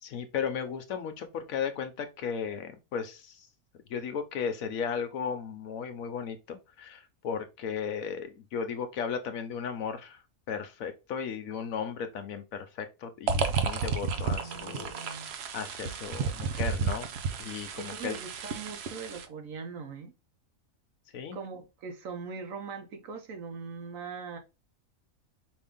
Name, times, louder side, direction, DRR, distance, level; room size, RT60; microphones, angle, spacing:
voice 1, 0.0-3.5 3.9-10.2 10.5-14.9 15.5-17.1 17.4-18.2 21.1-21.4, left 6 dB, 80° left, 1.2 m, -35 dB
sound 1, 13.3-19.2, right 5 dB, 60° right, 0.8 m, -32 dB
voice 2, 14.0-15.3 17.8-20.1 21.3-24.4, right 5 dB, 75° right, 1.2 m, -41 dB
5.2 x 2.7 x 3.5 m
omnidirectional pair, 1.4 m